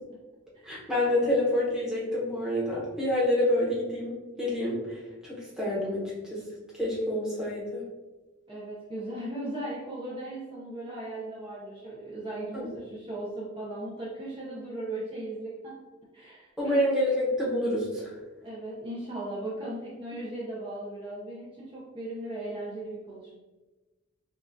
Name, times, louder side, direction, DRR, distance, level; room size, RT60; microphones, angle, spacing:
voice 1, 0.6-5.0 5.2-6.4 6.8-7.8 12.5-12.7 16.6-18.2, left 1 dB, 5° right, -7 dB, 1.0 m, -28 dB
voice 2, 8.5-15.8 16.1-16.8 18.4-23.3, right 1 dB, 25° right, -7 dB, 0.7 m, -37 dB
5.3 x 2.4 x 2.6 m, 1.2 s
head